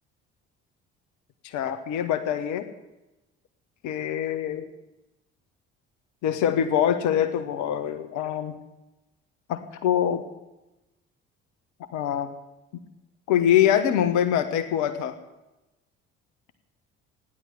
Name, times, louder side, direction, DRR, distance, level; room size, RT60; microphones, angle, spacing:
voice 1, 1.4-2.6 3.8-4.7 6.2-8.6 9.5-10.2 11.9-12.3 13.3-15.2, left 10 dB, 60° left, 9 dB, 1.5 m, -24 dB
16.0 x 11.0 x 7.9 m, 0.98 s
figure-of-eight pair, 50°, 33 cm